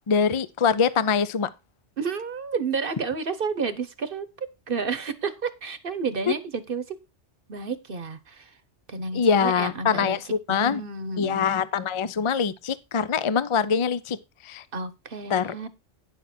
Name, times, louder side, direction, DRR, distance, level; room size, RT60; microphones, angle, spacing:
voice 1, 0.1-1.5 9.1-10.8 11.2-14.2 14.4-14.6 15.3-15.5, left 6 dB, 40° left, 0.4 m, -24 dB
voice 2, 2.0-7.0 7.5-8.5 8.9-10.2 10.5-11.5 14.7-15.7, right 5 dB, 50° right, 1.1 m, -31 dB
9.9 x 6.7 x 4.3 m
omnidirectional pair, 1.2 m